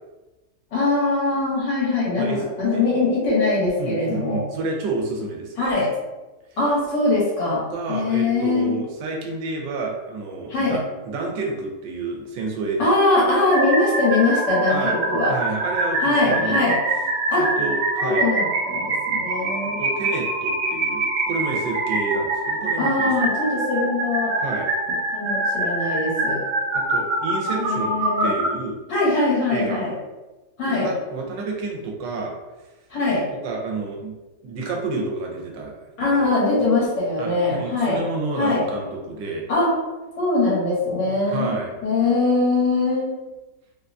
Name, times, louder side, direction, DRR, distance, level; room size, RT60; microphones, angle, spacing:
voice 1, 0.7-4.4 5.6-5.9 6.6-7.6 7.9-8.8 10.5-10.8 12.8-15.3 16.0-16.8 17.3-17.5 18.0-19.8 22.8-24.3 25.1-26.4 27.6-28.3 28.9-29.9 30.6-30.9 32.9-33.2 36.0-38.0 38.4-38.7 39.5-39.7 40.2-41.5 41.8-43.1, left 2 dB, 70° left, -7 dB, 1.8 m, -22 dB
voice 2, 3.8-5.6 7.5-12.9 14.7-15.0 15.2-16.7 17.4-18.3 19.8-23.1 24.3-24.7 26.7-27.9 28.2-28.8 29.5-29.8 30.7-32.3 33.4-34.1 34.4-36.3 37.2-39.5 41.2-41.8, right 3 dB, 90° right, 0 dB, 1.3 m, -29 dB
sound 1, 13.5-28.5, right 2 dB, 70° right, 1.0 m, -25 dB
3.6 x 2.2 x 2.6 m, 1.1 s
omnidirectional pair, 1.9 m